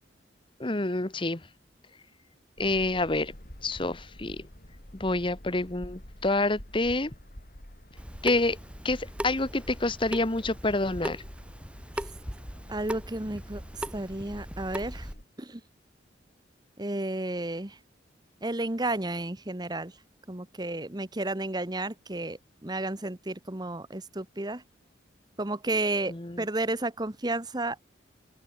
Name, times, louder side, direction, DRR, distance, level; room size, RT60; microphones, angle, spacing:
voice 1, 0.6-1.4 2.6-3.3 3.6-4.5 5.0-7.1 8.2-8.6 8.8-11.2 26.1-26.4, left 2 dB, 25° left, 1.2 m, -28 dB
sound 1, 2.6-15.2, equal, 50° left, 4.1 m, -48 dB
Water tap faucet / Sink (filling or washing) / Drip, 8.0-15.1, equal, 5° right, 8.0 m, -39 dB
voice 2, 12.7-15.1 15.4-15.6 16.8-17.8 18.4-19.9 20.3-24.6 25.4-27.8, right 2 dB, 20° right, 1.2 m, -32 dB
open air
head